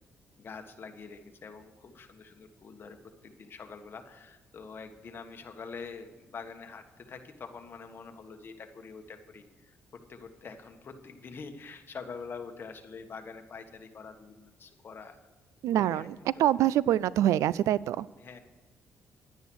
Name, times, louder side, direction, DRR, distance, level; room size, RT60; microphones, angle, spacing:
voice 1, 0.4-15.3 15.7-16.1 16.3-16.5 18.2-18.4, left 5 dB, 45° left, 6 dB, 1.4 m, -45 dB
voice 2, 15.6-16.0 16.4-18.1, right 12 dB, 85° right, 20 dB, 0.3 m, -25 dB
11.0 x 9.6 x 6.2 m, 1.3 s
cardioid pair, 100°, 5 cm